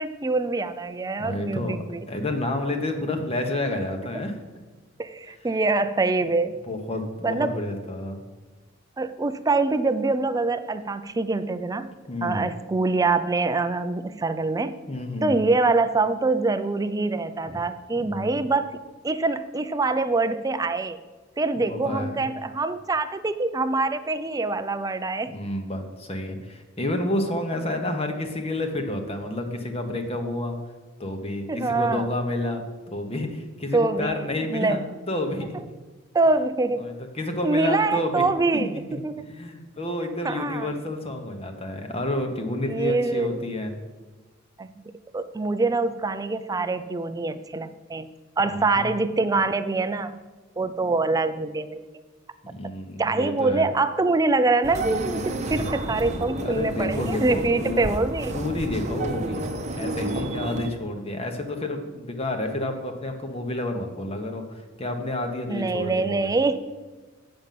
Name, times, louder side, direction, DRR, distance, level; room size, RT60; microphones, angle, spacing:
voice 1, 0.0-2.0 4.1-4.2 5.0-6.6 7.2-7.5 9.0-11.9 12.2-14.8 15.2-21.0 21.4-25.3 31.5-32.1 33.7-34.8 36.1-36.9 37.4-39.3 40.2-40.7 42.7-43.4 44.6-44.8 45.1-48.1 48.4-50.1 50.6-51.8 53.0-58.4 65.5-66.6, right 3 dB, 15° right, 11 dB, 0.4 m, -25 dB
voice 2, 1.2-1.8 2.1-4.4 6.6-8.2 12.1-12.5 14.9-15.3 17.4-17.6 18.0-18.4 21.6-22.2 25.3-30.6 31.0-35.5 36.8-38.3 38.5-38.8 39.2-43.7 48.5-48.9 52.5-53.7 56.4-57.8 58.3-59.4 59.7-66.3, left 1 dB, 30° left, 5 dB, 1.0 m, -30 dB
sound 1, 54.6-60.7, right 2 dB, 35° right, 0.8 m, -31 dB
8.8 x 5.3 x 7.5 m, 1.3 s
head